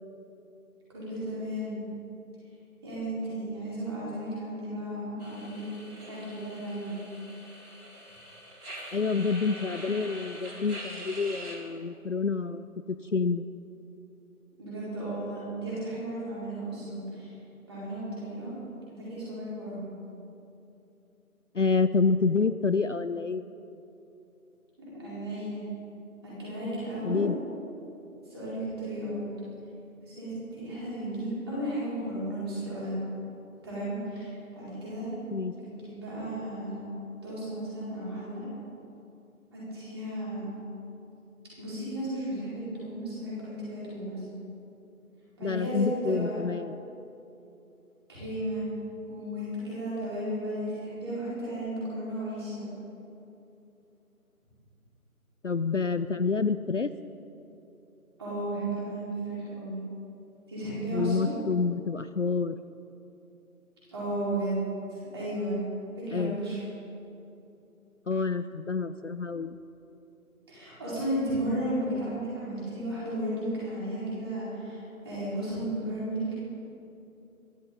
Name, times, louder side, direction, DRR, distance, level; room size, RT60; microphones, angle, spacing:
voice 1, 0.9-1.8 2.8-5.6 6.0-7.0 14.6-17.3 17.7-18.5 18.9-19.8 24.8-25.6 26.2-27.3 28.3-29.3 30.0-33.0 33.6-35.1 35.6-36.9 37.2-38.5 39.5-40.6 41.5-44.2 45.4-46.4 48.1-48.6 49.0-52.7 58.2-59.8 60.5-61.3 63.9-64.6 64.9-65.6 66.0-66.6 70.5-76.4, right 1 dB, 15° right, -10 dB, 4.5 m, -34 dB
sound 1, 5.2-11.6, right 1 dB, 80° right, 4.5 m, -44 dB
voice 2, 8.9-13.5 21.5-23.4 27.0-27.4 35.3-35.5 45.4-46.8 55.4-56.9 60.9-62.6 66.1-66.4 68.1-69.6, left 4 dB, 60° left, 12 dB, 0.5 m, -28 dB
22.0 x 13.5 x 3.9 m, 2.8 s
figure-of-eight pair, 175°, 44 cm